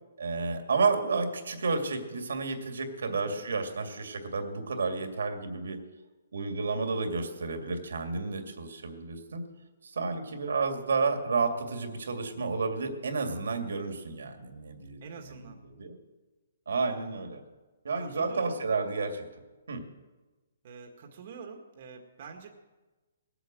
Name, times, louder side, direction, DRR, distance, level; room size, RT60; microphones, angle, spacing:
voice 1, 0.2-5.8 6.3-9.4 9.8-15.0 15.3-15.4 15.8-16.0 16.7-17.4 17.8-19.3 19.7-19.8, right 4 dB, 85° right, 5 dB, 2.4 m, -31 dB
voice 2, 3.1-3.4 15.0-15.6 18.0-18.6 20.6-22.5, right 5 dB, 45° right, 3 dB, 1.7 m, -46 dB
20.0 x 8.2 x 7.6 m, 1.2 s
hypercardioid pair, 165°, 0 cm